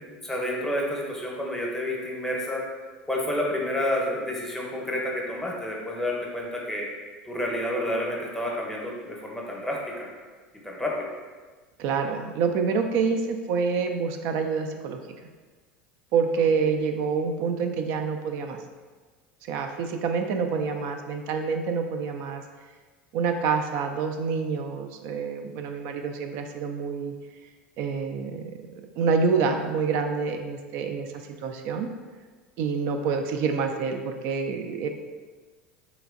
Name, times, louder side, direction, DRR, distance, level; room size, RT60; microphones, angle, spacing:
voice 1, 0.2-2.6 3.1-6.8 7.3-10.1 10.6-11.1 16.5-16.7, left 1 dB, 10° left, -2 dB, 0.8 m, -29 dB
voice 2, 11.8-15.0 16.1-18.6 19.4-22.4 23.1-27.1 27.8-28.4 29.0-31.9 32.6-34.9, right 5 dB, 60° right, 5 dB, 0.4 m, -27 dB
3.2 x 3.0 x 2.4 m, 1.4 s
hypercardioid pair, 80°, 5 cm